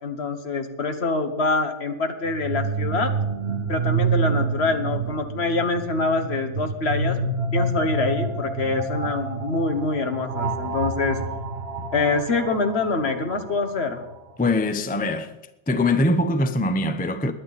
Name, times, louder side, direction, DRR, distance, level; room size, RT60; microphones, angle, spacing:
voice 1, 0.0-3.1 3.7-7.2 7.5-11.2 11.9-14.0, left 3 dB, 55° left, 1.5 m, -25 dB
sound 1, 2.3-14.1, right 3 dB, 55° right, 1.5 m, -28 dB
voice 2, 14.4-15.3 15.7-17.3, left 2 dB, 10° left, 0.6 m, -22 dB
21.0 x 9.3 x 4.1 m
omnidirectional pair, 1.3 m